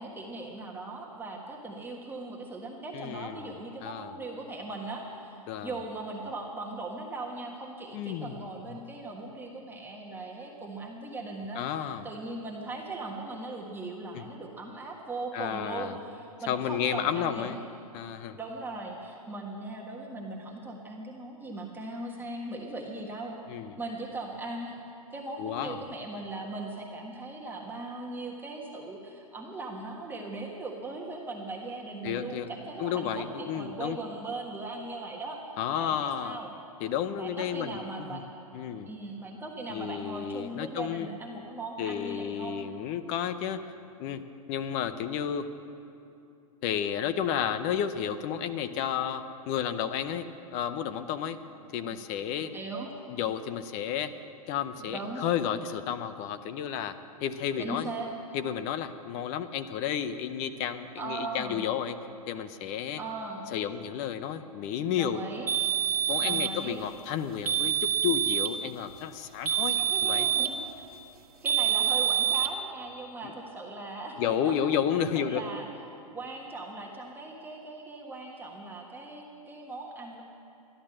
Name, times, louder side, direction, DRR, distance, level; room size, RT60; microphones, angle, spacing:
voice 1, 0.0-17.6 18.4-23.4 23.8-35.4 35.8-36.5 37.2-38.3 38.9-42.6 51.5-51.6 52.5-52.9 54.8-55.2 57.6-58.1 61.0-61.6 63.0-63.5 64.9-65.5 66.2-66.8 69.8-70.7 71.4-74.6 75.1-75.7 76.1-80.2, right 2 dB, 10° right, -1 dB, 1.4 m, -39 dB
voice 2, 2.9-4.1 5.5-5.8 7.9-8.5 11.5-12.1 14.1-14.2 15.3-16.0 16.5-17.6 17.9-18.4 23.5-23.8 25.4-25.8 32.0-32.5 32.8-34.0 35.6-36.4 36.8-38.2 38.5-38.9 39.7-41.1 41.8-43.6 44.0-44.2 44.5-45.5 46.6-51.4 51.7-52.6 53.1-54.1 54.5-56.9 57.2-57.9 58.3-62.0 62.3-63.0 63.5-65.2 66.1-67.7 68.0-70.3 74.2-75.4, left 9 dB, 35° left, 11 dB, 0.7 m, -32 dB
sound 1, 65.5-66.6 67.5-68.6 69.5-70.6 71.5-72.5, right 10 dB, 75° right, 1.4 m, -26 dB
13.5 x 11.0 x 7.6 m, 2.7 s
hypercardioid pair, 120°, 19 cm